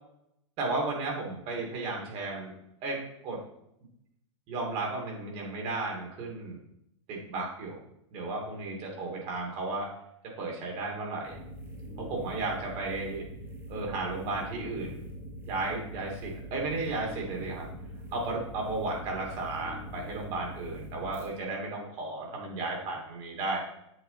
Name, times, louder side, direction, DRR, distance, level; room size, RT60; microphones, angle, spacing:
voice 1, 0.6-2.5 2.8-3.4 4.5-6.6 7.1-7.8 8.1-9.9 10.4-11.4 12.0-13.2 13.7-15.0 15.4-17.7 18.1-23.6, right 3 dB, 45° right, 0 dB, 2.6 m, -34 dB
sound 1, 11.2-21.3, equal, 15° right, 1.4 m, -43 dB
7.8 x 5.1 x 4.0 m, 0.78 s
hypercardioid pair, 120°, 16 cm